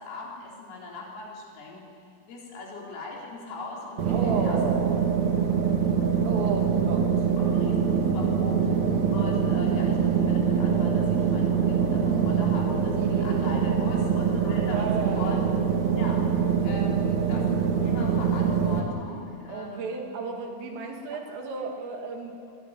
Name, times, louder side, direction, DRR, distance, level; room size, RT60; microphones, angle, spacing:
voice 1, 0.0-1.9 2.3-4.6 7.4-8.7 9.1-15.4 15.9-16.2 16.6-19.9 22.5-22.6, left 3 dB, 75° left, -2 dB, 6.4 m, -40 dB
sound 1, 4.0-18.8, right 6 dB, 45° right, 2.9 m, -24 dB
voice 2, 4.1-5.0 6.3-7.1 13.0-13.4 14.6-15.4 19.5-22.4, right 5 dB, 75° right, 2 dB, 5.4 m, -33 dB
25.5 x 20.5 x 9.4 m, 2.2 s
omnidirectional pair, 6.0 m